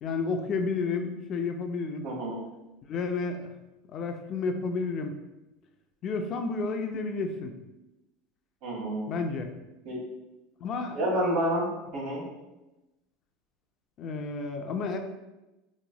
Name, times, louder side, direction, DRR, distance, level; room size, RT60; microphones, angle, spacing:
voice 1, 0.0-2.1 2.8-3.5 3.9-5.1 6.0-7.5 9.1-9.5 10.6-11.0 14.0-15.0, left 4 dB, 40° left, 5 dB, 0.3 m, -31 dB
voice 2, 2.0-2.4 8.6-9.0 9.8-10.0 10.9-12.2, right 1 dB, 70° right, -4 dB, 1.2 m, -29 dB
3.0 x 2.1 x 2.6 m, 0.98 s
supercardioid pair, 130°, 0 cm